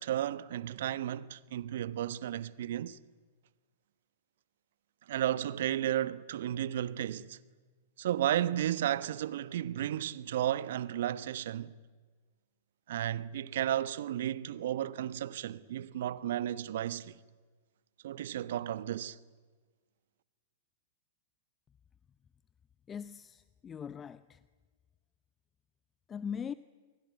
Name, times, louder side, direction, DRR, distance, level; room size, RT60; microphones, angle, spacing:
voice 1, 0.0-3.0 5.1-7.4 8.0-11.7 12.9-17.2 18.0-19.2, right 11 dB, 65° right, 1.1 m, -33 dB
voice 2, 22.9-24.4 26.1-26.5, left 7 dB, 25° left, 0.7 m, -40 dB
27.5 x 23.5 x 9.3 m
hypercardioid pair, 105°, 0 cm